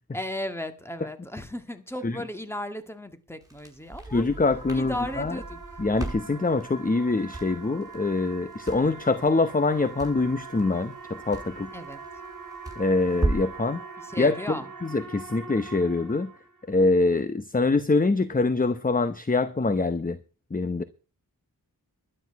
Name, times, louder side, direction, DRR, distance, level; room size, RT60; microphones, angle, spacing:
voice 1, 0.1-4.2 4.7-5.8 11.7-12.0 14.0-14.7, left 1 dB, 5° left, 1.9 m, -35 dB
Crackle, 3.4-13.6, right 2 dB, 10° right, 7.2 m, -37 dB
sound 1, 3.9-16.7, right 4 dB, 55° right, 2.0 m, -43 dB
voice 2, 4.1-5.4 5.8-11.7 12.8-13.8 14.2-14.3 14.8-16.3 16.7-20.2 20.5-20.8, left 3 dB, 20° left, 0.8 m, -24 dB
12.0 x 9.9 x 5.9 m
wide cardioid pair, 75°, 37 cm